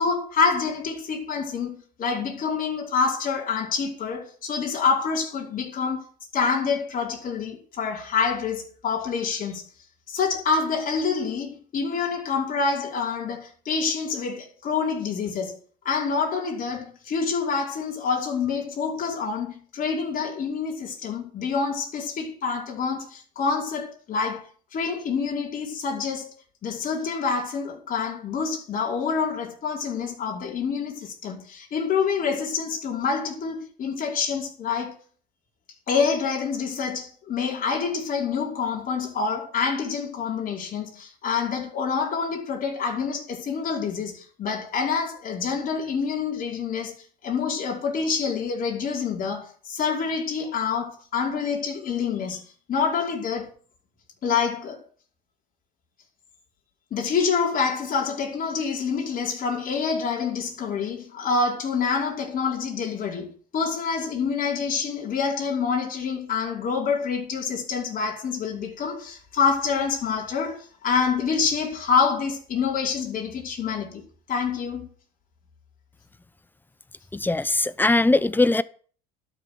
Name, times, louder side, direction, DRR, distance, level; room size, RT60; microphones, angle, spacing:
voice 1, 0.0-6.1 6.3-9.6 10.1-15.6 15.9-24.4 24.7-26.3 26.6-35.0 35.9-46.9 47.2-52.4 52.7-53.5 54.2-54.8 56.9-74.0 74.3-74.9, left 5 dB, 45° left, 5.2 m, -27 dB
voice 2, 77.1-78.6, left 2 dB, 10° left, 0.8 m, -20 dB
12.5 x 7.0 x 9.6 m
supercardioid pair, 90°, 20 cm